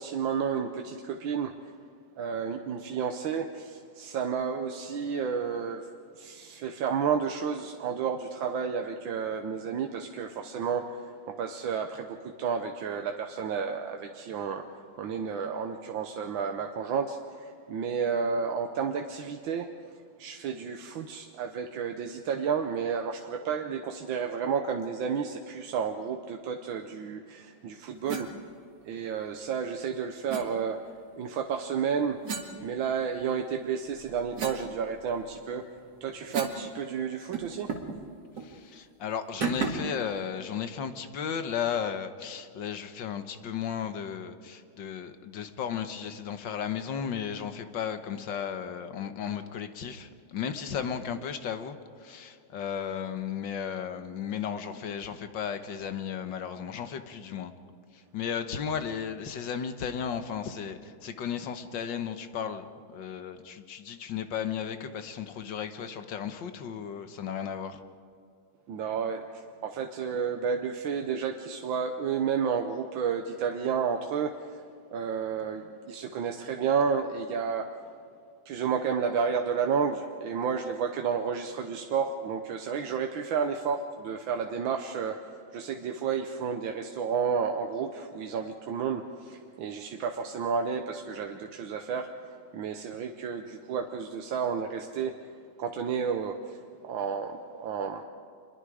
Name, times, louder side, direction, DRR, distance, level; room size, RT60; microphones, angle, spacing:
voice 1, 0.0-1.7 2.2-5.9 6.2-14.6 15.0-19.7 20.2-28.3 28.8-30.8 31.2-32.2 32.6-35.7 36.0-37.7 68.7-74.6 74.9-77.7 78.4-92.1 92.5-95.2 95.6-98.0, right 6 dB, 75° right, 4 dB, 1.7 m, -31 dB
sound 1, 28.1-28.3 30.3-30.5 32.2-33.3 33.8-36.7 36.9-37.0 37.3-38.0 38.3-38.5 39.4-40.0, right 6 dB, 60° right, 2.4 m, -36 dB
voice 2, 38.4-57.5 57.9-67.8, left 7 dB, 70° left, 9 dB, 1.8 m, -35 dB
26.0 x 21.5 x 4.9 m, 2.4 s
omnidirectional pair, 2.2 m